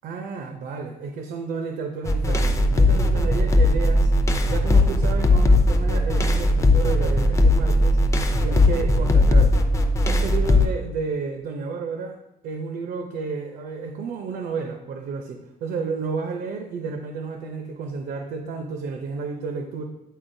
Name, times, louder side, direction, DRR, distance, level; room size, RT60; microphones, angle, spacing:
voice 1, 0.0-4.1 4.5-8.0 8.4-9.7 10.0-12.2 12.4-19.8, right 5 dB, 85° right, 4 dB, 0.7 m, -31 dB
sound 1, 2.1-10.7, left 1 dB, 20° left, 0.5 m, -18 dB
9.3 x 4.0 x 2.6 m, 0.90 s
cardioid pair, 170°, 15 cm